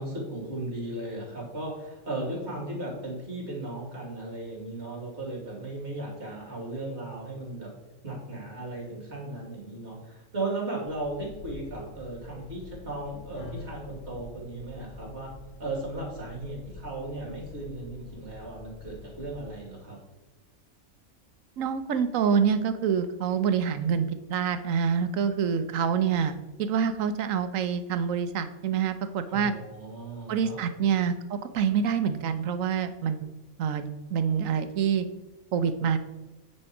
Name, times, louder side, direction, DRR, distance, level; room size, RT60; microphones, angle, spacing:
voice 1, 0.0-7.7 8.0-15.3 15.6-20.0 29.3-30.6, right 2 dB, 50° right, -2 dB, 3.0 m, -36 dB
sound 1, 10.8-19.5, left 2 dB, 80° left, 2.4 m, -47 dB
sound 2, 13.3-21.6, equal, 55° left, 1.8 m, -52 dB
voice 2, 21.6-29.5 30.3-33.3 33.6-35.0 35.5-36.0, right 7 dB, 70° right, 10 dB, 1.1 m, -26 dB
9.2 x 4.4 x 5.9 m, 1.1 s
omnidirectional pair, 1.5 m